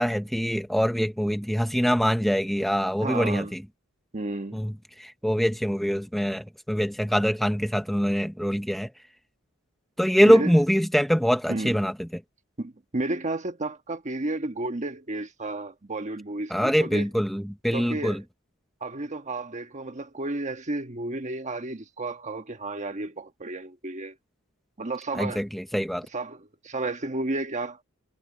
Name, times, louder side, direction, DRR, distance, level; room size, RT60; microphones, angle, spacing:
voice 1, 0.0-3.6 4.5-4.7 5.0-8.9 10.0-11.9 16.5-18.2 25.2-26.0, equal, ahead, 0.7 m, -24 dB
voice 2, 3.0-3.6 4.1-4.7 10.2-10.5 11.5-11.8 12.6-17.1 17.7-18.2 18.8-24.2 24.8-25.4 26.1-27.8, right 2 dB, 35° right, 1.3 m, -32 dB
head